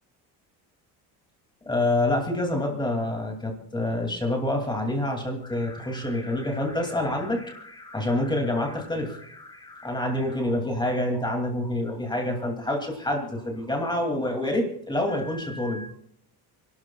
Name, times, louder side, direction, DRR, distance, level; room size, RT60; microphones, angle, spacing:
voice 1, 1.7-15.9, left 1 dB, 10° left, 2 dB, 2.5 m, -27 dB
30.0 x 12.0 x 2.3 m, 0.68 s
cardioid pair, 145°, 38 cm